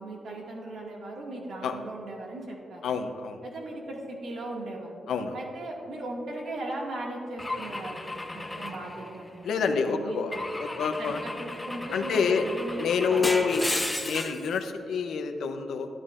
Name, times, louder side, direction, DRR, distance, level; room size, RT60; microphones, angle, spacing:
voice 1, 0.0-2.9 3.4-4.9 5.3-8.0 8.3-10.4 11.0-13.5, right 2 dB, 70° right, -2 dB, 1.9 m, -38 dB
voice 2, 2.8-3.4 5.1-5.4 9.4-11.2 11.9-12.5 12.8-13.6 14.0-15.9, left 5 dB, 90° left, 6 dB, 0.7 m, -27 dB
Car / Engine / Glass, 7.4-9.6 10.3-14.5, left 1 dB, 10° left, 0.6 m, -34 dB
12.5 x 11.0 x 2.5 m, 2.4 s
wide cardioid pair, 145°, 0 cm